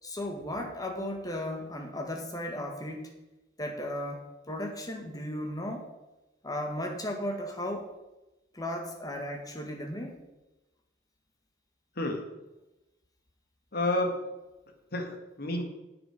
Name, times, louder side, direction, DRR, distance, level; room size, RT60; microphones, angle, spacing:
voice 1, 0.0-3.1 3.6-5.9 6.4-7.9 8.5-10.2, left 1 dB, 20° left, 2 dB, 1.9 m, -35 dB
voice 2, 12.0-12.3 13.7-14.3 14.9-15.6, left 1 dB, 55° left, 4 dB, 1.8 m, -30 dB
9.4 x 7.9 x 6.1 m, 1.0 s
head